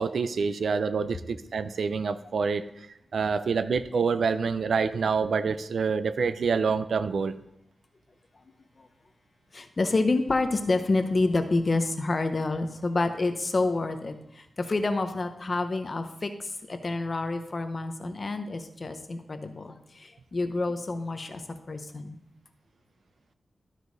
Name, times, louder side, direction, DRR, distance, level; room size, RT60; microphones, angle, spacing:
voice 1, 0.0-2.7 3.1-7.3, right 5 dB, 85° right, 12 dB, 0.4 m, -27 dB
voice 2, 9.5-21.4 21.7-22.2, left 3 dB, 35° left, 8 dB, 0.7 m, -28 dB
12.0 x 4.9 x 4.0 m, 0.81 s
wide cardioid pair, 155°, 0 cm